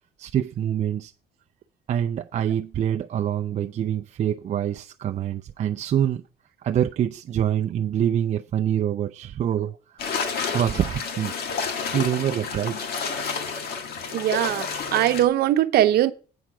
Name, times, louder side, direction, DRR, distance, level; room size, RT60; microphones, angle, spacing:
voice 1, 0.2-1.1 1.9-6.2 6.6-10.1 10.5-11.3 11.9-12.8, right 10 dB, 45° right, 0.5 m, -25 dB
sound 1, 10.0-15.2, left 5 dB, 70° left, 1.7 m, -30 dB
voice 2, 14.1-16.1, right 12 dB, 70° right, 0.8 m, -21 dB
8.6 x 5.8 x 6.2 m
cardioid pair, 110°, 17 cm